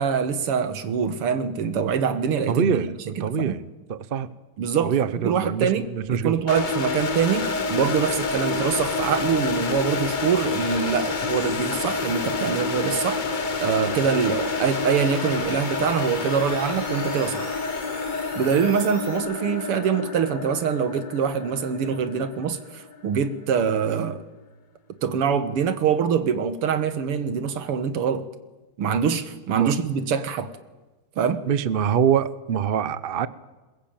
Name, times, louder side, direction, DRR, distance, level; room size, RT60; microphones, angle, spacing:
voice 1, 0.0-2.9 3.2-3.6 4.6-4.9 5.2-13.2 13.6-17.6 18.4-24.2 25.0-28.3 28.8-30.5 31.2-31.4, right 7 dB, 90° right, 2.4 m, -24 dB
voice 2, 2.5-4.3 4.8-6.4 29.5-29.7 31.5-33.3, right 7 dB, 55° right, 0.5 m, -24 dB
sound 1, 6.5-23.3, left 4 dB, 50° left, 0.6 m, -28 dB
sound 2, 7.5-19.2, right 1 dB, 40° right, 5.7 m, -43 dB
21.5 x 21.0 x 8.9 m
omnidirectional pair, 2.4 m